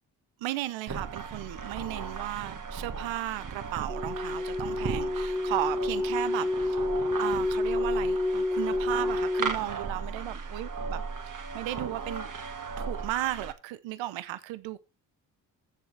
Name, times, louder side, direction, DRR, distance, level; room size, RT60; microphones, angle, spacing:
voice 1, 0.4-6.8 7.2-11.0 11.3-12.3 12.8-14.8, right 15 dB, 70° right, 0.8 m, -35 dB
sound 1, 0.9-13.5, right 5 dB, 40° right, 1.8 m, -37 dB
sound 2, 3.9-9.5, left 2 dB, ahead, 0.5 m, -29 dB
15.0 x 7.1 x 3.3 m
hypercardioid pair, 45°, 47 cm